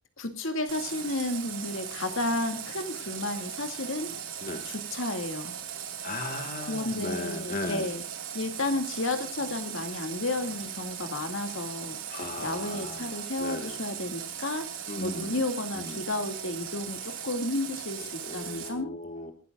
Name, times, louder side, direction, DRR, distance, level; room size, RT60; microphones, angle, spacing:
voice 1, 0.2-4.1 4.6-5.6 6.7-8.0 8.3-14.7 15.0-18.9, left 2 dB, 60° left, 7 dB, 2.5 m, -32 dB
Water tap faucet, 0.7-18.7, right 8 dB, 60° right, 4.8 m, -38 dB
voice 2, 6.0-7.9 12.1-13.8 14.9-15.3 15.7-16.0 18.0-19.3, left 2 dB, 40° left, 6 dB, 1.8 m, -37 dB
27.0 x 12.5 x 2.4 m, 0.38 s
head